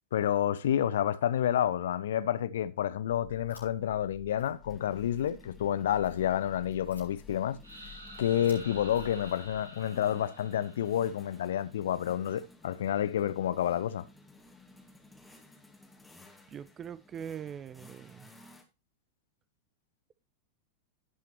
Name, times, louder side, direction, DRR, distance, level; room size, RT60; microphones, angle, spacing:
voice 1, 0.1-7.6 8.2-14.1, left 10 dB, 60° left, 0.6 m, -29 dB
sound 1, 3.1-9.6, left 7 dB, 80° left, 5.6 m, -52 dB
sound 2, 3.7-18.6, left 2 dB, 5° left, 2.0 m, -56 dB
sound 3, 7.6-11.4, right 1 dB, 80° right, 2.0 m, -49 dB
voice 2, 16.5-18.3, right 8 dB, 25° right, 0.4 m, -42 dB
17.0 x 5.8 x 2.9 m
figure-of-eight pair, 90°, 0 cm